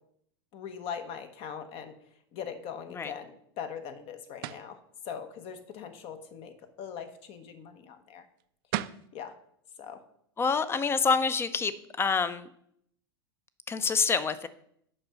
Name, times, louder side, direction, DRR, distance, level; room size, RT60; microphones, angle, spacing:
voice 1, 0.5-1.9 2.3-4.8 5.0-8.2 9.1-9.3 9.8-10.0, left 7 dB, 50° left, 9 dB, 1.1 m, -41 dB
sound 1, 4.4-4.7 8.4-8.5 8.7-9.1, right 14 dB, 60° right, 0.4 m, -34 dB
voice 2, 10.4-11.7 12.0-12.5 13.7-14.5, left 5 dB, 20° left, 14 dB, 0.6 m, -26 dB
6.7 x 5.3 x 5.7 m, 0.70 s
hypercardioid pair, 105°, 13 cm